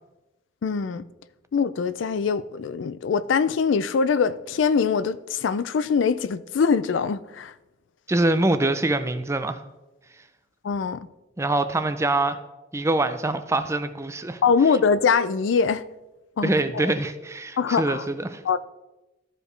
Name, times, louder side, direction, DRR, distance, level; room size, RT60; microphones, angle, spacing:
voice 1, 0.6-1.0 1.5-7.5 10.6-11.1 14.4-15.8 16.4-16.9 17.6-18.1 18.4-18.6, left 5 dB, 75° left, 0.4 m, -23 dB
voice 2, 8.1-9.6 11.4-12.4 12.7-14.4 16.4-18.4, right 2 dB, 15° right, 0.4 m, -24 dB
13.5 x 5.0 x 3.2 m
head